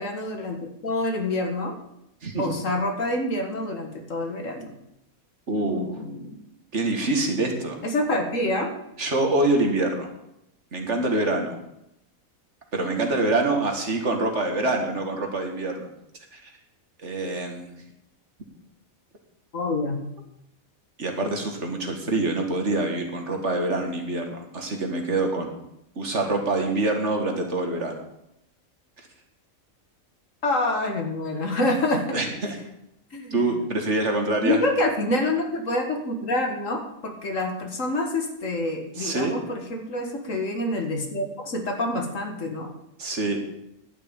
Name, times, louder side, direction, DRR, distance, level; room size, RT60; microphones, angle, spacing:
voice 1, 0.0-1.8 2.4-4.7 5.5-6.4 7.8-8.7 19.5-20.0 30.4-32.2 33.1-33.6 34.4-42.7, left 2 dB, 65° left, 4 dB, 2.0 m, -27 dB
voice 2, 5.5-6.0 6.7-7.8 9.0-10.1 10.7-11.6 12.7-15.9 16.3-16.5 17.0-17.7 21.0-25.6 26.0-28.0 32.1-32.6 33.3-34.6 39.0-39.3 43.0-43.4, right 2 dB, 55° right, 3 dB, 2.0 m, -25 dB
11.0 x 6.2 x 8.9 m, 0.82 s
omnidirectional pair, 1.4 m